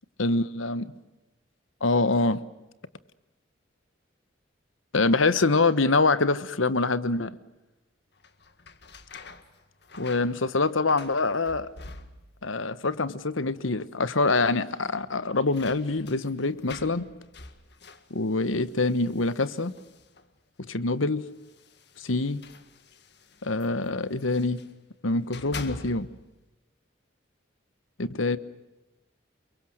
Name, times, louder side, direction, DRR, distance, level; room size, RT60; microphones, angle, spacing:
voice 1, 0.2-0.9 1.8-2.4 4.9-7.3 10.0-11.7 12.4-17.1 18.1-19.7 20.7-21.2 22.0-22.4 23.4-24.6 25.0-26.1 28.0-28.4, left 3 dB, 85° left, 14 dB, 1.3 m, -25 dB
sound 1, 8.1-12.5 12.8-13.5 13.8-13.9 15.0-20.4 21.3-24.8 25.1-26.3, left 3 dB, 55° left, 1.9 m, -47 dB
29.5 x 23.0 x 6.6 m, 0.99 s
head